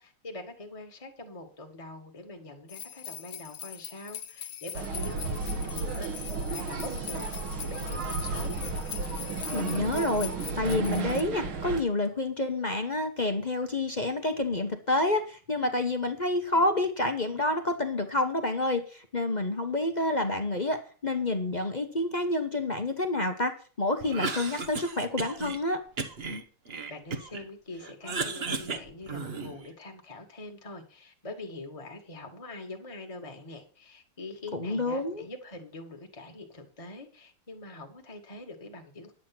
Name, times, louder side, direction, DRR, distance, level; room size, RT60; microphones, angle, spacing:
voice 1, 0.0-7.3 7.6-8.5 26.9-39.1, left 2 dB, 15° left, 3 dB, 1.8 m, -44 dB
sound 1, 2.7-11.2, left 10 dB, 65° left, 1.5 m, -41 dB
sound 2, 4.7-11.8, right 4 dB, 75° right, 2.2 m, -33 dB
voice 2, 9.5-25.8 34.5-35.2, left 2 dB, 35° left, 6 dB, 0.7 m, -28 dB
Cough, 24.0-25.6 26.0-27.5 27.8-29.7, right 4 dB, 40° right, 1.0 m, -35 dB
10.5 x 8.5 x 6.0 m, 0.40 s
omnidirectional pair, 2.3 m